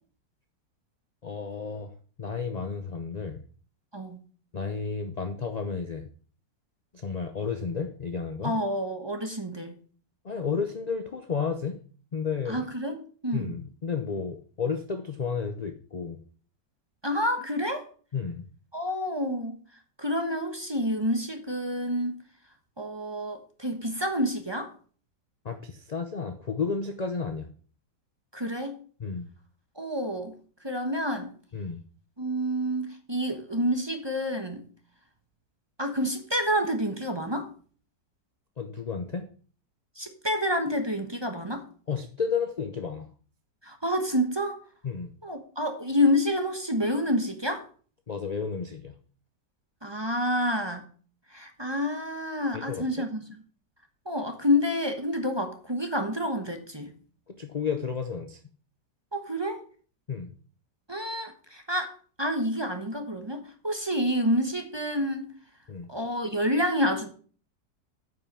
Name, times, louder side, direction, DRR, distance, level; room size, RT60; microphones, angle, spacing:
voice 1, 1.2-1.9 2.2-3.4 4.5-6.1 6.9-8.6 10.2-11.8 12.1-12.6 13.3-16.2 18.1-18.4 25.4-27.5 29.0-29.3 31.5-31.8 38.6-39.3 41.9-43.1 44.8-45.1 48.1-49.0 52.5-52.8 57.3-58.4 60.1-60.3 65.7-65.9, left 5 dB, 55° left, 7 dB, 0.4 m, -32 dB
voice 2, 8.4-9.8 12.5-13.5 17.0-17.9 18.7-19.6 20.0-22.2 22.8-24.7 28.3-28.8 29.8-30.4 30.6-31.3 32.2-34.6 35.8-37.5 40.0-41.6 43.6-44.6 45.2-47.6 49.8-50.9 51.3-53.3 54.0-56.9 59.1-59.6 60.9-61.9 62.2-65.3 65.9-67.1, equal, 20° right, 5 dB, 0.9 m, -28 dB
9.2 x 5.7 x 6.1 m, 0.42 s
omnidirectional pair, 1.9 m